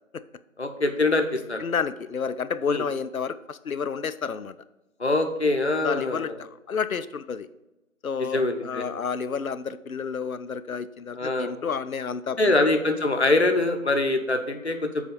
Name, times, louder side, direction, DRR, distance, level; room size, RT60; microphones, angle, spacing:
voice 1, 0.6-1.6 2.7-2.8 5.0-6.3 8.3-8.8 11.2-11.5 12.4-15.0, left 2 dB, 55° left, 6 dB, 0.8 m, -24 dB
voice 2, 1.6-4.5 5.8-7.5 8.0-12.6, left 6 dB, 85° left, 14 dB, 0.6 m, -30 dB
7.2 x 4.4 x 5.3 m, 1.0 s
figure-of-eight pair, 180°, 41 cm